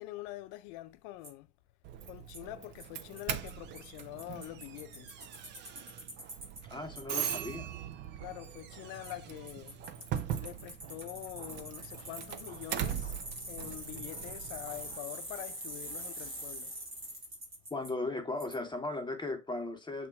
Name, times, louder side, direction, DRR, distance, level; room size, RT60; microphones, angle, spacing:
voice 1, 0.0-1.5 2.0-5.2 8.2-13.2 13.5-16.8, left 16 dB, 50° left, 0.7 m, -45 dB
Bicycle, 1.2-1.3 2.3-2.4 2.8-2.9 3.2-3.3 3.5-3.6 3.8-6.6 7.0-7.1 9.0-9.1 9.5-17.9 18.4-18.5, right 1 dB, 85° right, 2.8 m, -44 dB
Doorbell, 1.8-15.0, right 9 dB, 25° right, 0.3 m, -41 dB
voice 2, 6.7-7.7 17.7-20.1, left 2 dB, 10° left, 1.1 m, -37 dB
7.4 x 2.8 x 2.3 m
figure-of-eight pair, 70°, 48 cm